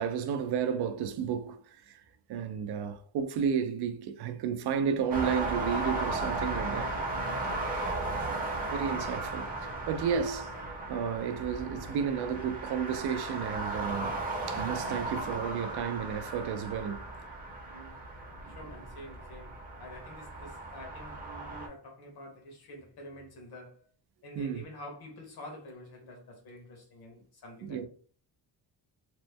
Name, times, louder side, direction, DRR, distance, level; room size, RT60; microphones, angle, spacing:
voice 1, 0.0-2.0 2.3-6.9 8.7-9.5 9.9-10.5 10.9-14.1 14.5-17.1 24.4-24.6 27.6-27.9, right 7 dB, 70° right, 0.5 m, -32 dB
sound 1, 5.1-21.7, right 2 dB, 20° right, 0.7 m, -36 dB
voice 2, 17.7-18.0 18.5-23.9 24.2-27.9, left 1 dB, 65° left, 1.2 m, -48 dB
3.0 x 2.1 x 3.4 m
cardioid pair, 175°, 41 cm